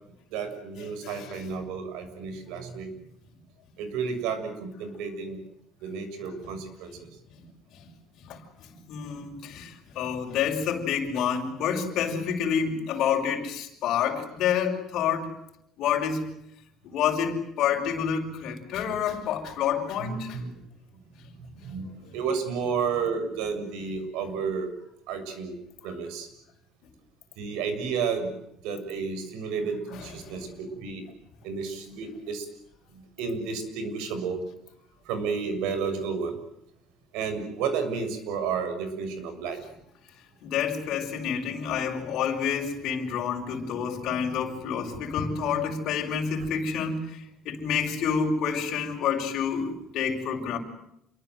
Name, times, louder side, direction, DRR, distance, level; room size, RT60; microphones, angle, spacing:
voice 1, 0.3-2.9 3.8-5.4 5.8-7.1 20.0-20.6 21.4-24.7 25.1-25.6 25.8-26.3 27.4-28.3 28.6-31.0 31.4-32.5 32.9-34.4 35.1-36.4 37.1-39.6 45.1-45.3, right 5 dB, 90° right, 9 dB, 6.9 m, -32 dB
voice 2, 1.0-1.5 6.4-6.5 7.7-7.9 8.2-15.3 15.8-16.2 16.8-20.4 30.0-30.5 40.4-50.6, left 7 dB, 50° left, 1 dB, 6.2 m, -28 dB
29.0 x 23.5 x 8.0 m, 0.78 s
cardioid pair, 180°, 0 cm